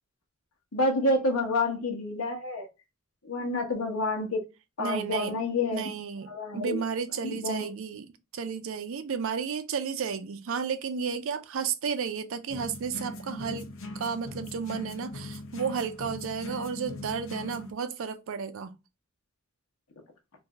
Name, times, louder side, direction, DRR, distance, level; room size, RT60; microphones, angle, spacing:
voice 1, 0.7-2.7 3.2-4.4 4.8-5.9 6.3-6.8 7.2-7.7, left 2 dB, 85° left, 1.1 m, -28 dB
voice 2, 4.8-5.4 5.7-13.7 13.9-18.7, right 6 dB, 70° right, 0.5 m, -33 dB
sound 1, 12.5-17.7, left 2 dB, 70° left, 0.7 m, -40 dB
3.2 x 2.6 x 3.5 m
head